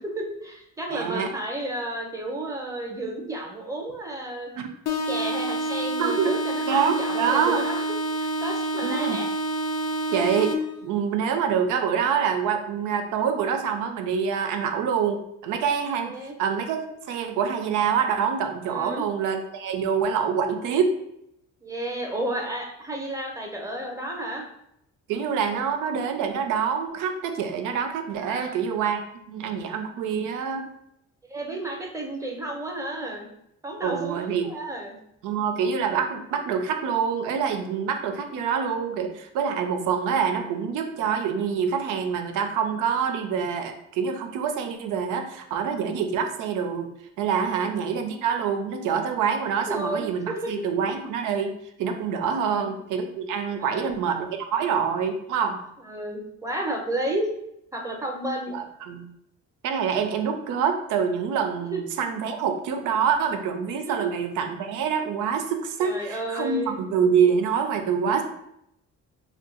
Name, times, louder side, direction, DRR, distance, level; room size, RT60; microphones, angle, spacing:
voice 1, 0.0-4.5 4.9-7.8 8.1-9.3 16.0-16.3 18.7-19.0 21.6-24.4 28.2-28.6 31.3-33.3 33.6-35.0 47.5-47.7 49.7-50.6 52.4-52.7 53.6-54.0 55.8-57.3 57.7-58.5 61.7-61.8 63.9-64.1 65.8-66.8, right 1 dB, 10° right, 1 dB, 0.6 m, -32 dB
voice 2, 0.9-1.3 4.6-4.7 6.0-6.3 6.7-7.6 8.8-9.2 10.1-10.5 10.8-16.1 16.4-20.9 25.1-30.6 33.8-34.5 35.2-46.9 47.2-55.6 58.5-59.1 59.6-68.2, right 7 dB, 90° right, 6 dB, 0.5 m, -26 dB
sound 1, 4.9-10.9, right 1 dB, 60° left, 0.5 m, -28 dB
2.7 x 2.3 x 3.6 m, 0.78 s
cardioid pair, 90°, 30 cm